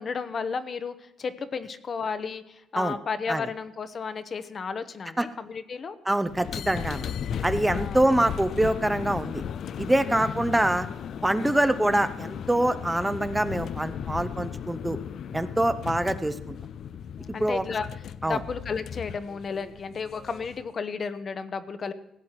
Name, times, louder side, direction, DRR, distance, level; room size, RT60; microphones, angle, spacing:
voice 1, 0.0-6.0 7.7-8.1 10.0-10.4 11.4-11.6 17.3-17.9 18.2-21.9, left 5 dB, 45° left, 11 dB, 0.9 m, -33 dB
voice 2, 6.1-7.1 7.4-9.4 9.8-10.9 11.2-15.0 15.3-16.6 17.4-17.6 18.2-18.4, right 1 dB, 10° right, 11 dB, 0.7 m, -25 dB
sound 1, 6.3-20.7, left 8 dB, 65° left, 0.5 m, -36 dB
16.5 x 8.3 x 5.8 m, 0.91 s
cardioid pair, 90°, 0 cm